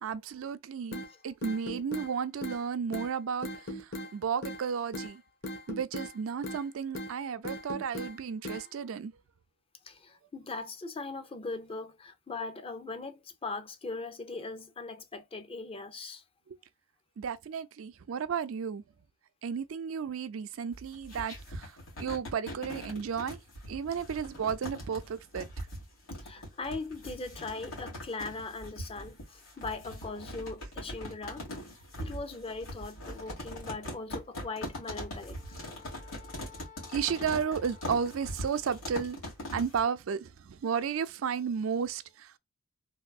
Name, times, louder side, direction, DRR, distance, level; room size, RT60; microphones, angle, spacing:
voice 1, 0.0-5.2 5.7-9.1 16.5-16.6 17.2-18.8 19.4-21.7 22.0-23.4 23.7-25.5 36.9-39.2 39.5-42.3, right 6 dB, 75° right, 0.4 m, -33 dB
sound 1, 0.9-1.1 1.4-2.1 2.4-2.6 2.9-3.1 3.4-4.1 4.4-4.6 4.9-5.1 5.4-6.1 6.4-6.6 6.9-7.1 7.4-8.1 8.4-8.6, equal, 50° left, 1.0 m, -38 dB
voice 2, 9.8-16.2 26.2-31.5 32.0-35.6, left 3 dB, 25° left, 0.5 m, -40 dB
sound 2, 20.7-39.8, equal, 90° left, 2.2 m, -41 dB
Wind instrument woodwind instrument, 34.4-38.8, left 7 dB, 70° left, 1.3 m, -55 dB
3.6 x 2.6 x 2.3 m
head